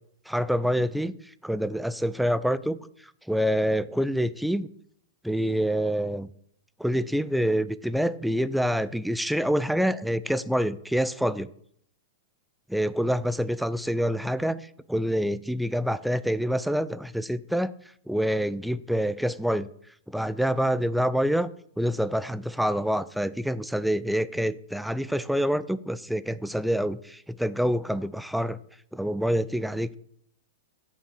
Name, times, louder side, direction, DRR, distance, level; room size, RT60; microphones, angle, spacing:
voice 1, 0.3-1.1 1.4-2.8 3.3-4.7 5.2-6.3 6.8-11.5 12.7-17.7 18.1-19.7 20.1-21.5 21.8-28.6 28.9-30.0, equal, ahead, 15 dB, 0.4 m, -26 dB
9.1 x 6.2 x 7.1 m, 0.67 s
hypercardioid pair, 120°, 0 cm